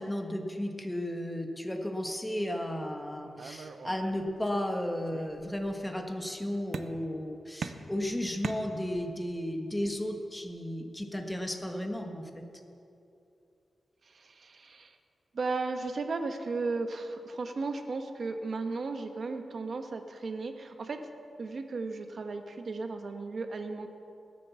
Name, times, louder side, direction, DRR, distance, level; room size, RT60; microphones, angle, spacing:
voice 1, 0.0-12.5, left 1 dB, 10° left, 3 dB, 1.4 m, -34 dB
sound 1, 3.4-4.7 5.1-5.8 6.7-7.2 7.6-9.2, right 5 dB, 80° right, 0.8 m, -41 dB
voice 2, 14.0-14.9 15.3-21.1 21.4-23.9, right 3 dB, 55° right, 6 dB, 1.3 m, -35 dB
18.5 x 10.0 x 7.0 m, 2.7 s
wide cardioid pair, 105°, 0 cm